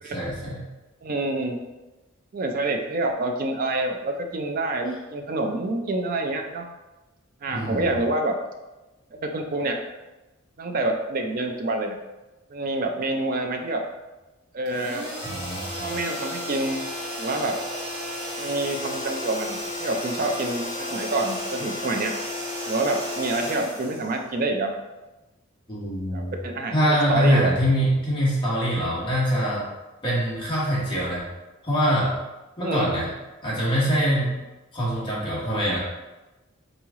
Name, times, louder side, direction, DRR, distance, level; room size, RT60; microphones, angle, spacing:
voice 1, 0.1-0.6 7.5-7.9 15.2-15.6 25.7-26.3 26.7-29.6 30.0-31.2 31.6-32.2 32.6-33.1 33.4-34.4 34.7-35.8, equal, 25° left, -7 dB, 1.3 m, -24 dB
voice 2, 1.0-1.6 2.3-6.6 7.4-8.4 9.1-9.8 10.6-12.0 12.5-13.8 14.5-15.1 15.8-16.8 17.2-17.6 18.4-22.1 22.7-24.8 26.1-27.5 32.6-32.9, right 2 dB, 40° right, 3 dB, 0.4 m, -27 dB
sound 1, 14.7-24.6, left 1 dB, 25° right, 1.2 m, -33 dB
3.9 x 3.1 x 3.6 m, 1.1 s
head